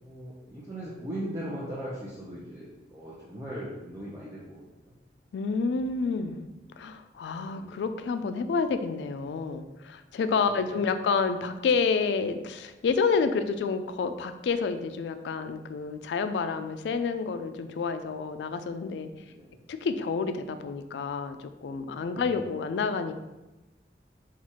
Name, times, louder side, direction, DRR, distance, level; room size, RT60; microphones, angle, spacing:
voice 1, 0.0-4.9 7.5-7.8 10.5-10.8 19.3-19.6 22.1-22.4, right 1 dB, 15° right, -8 dB, 0.6 m, -39 dB
voice 2, 5.3-6.5 6.8-19.1 19.7-23.1, left 5 dB, 85° left, 9 dB, 0.3 m, -29 dB
4.4 x 2.4 x 4.2 m, 1.0 s
head